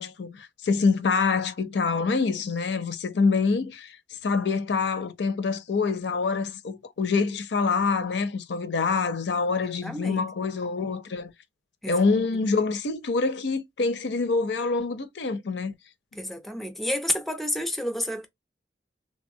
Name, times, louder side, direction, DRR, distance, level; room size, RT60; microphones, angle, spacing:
voice 1, 0.0-4.0 4.2-11.3 11.9-15.7, left 4 dB, 85° left, 0.5 m, -26 dB
voice 2, 9.8-10.2 11.8-12.0 12.3-12.4 16.2-18.3, left 1 dB, ahead, 0.4 m, -30 dB
3.2 x 2.2 x 2.6 m
head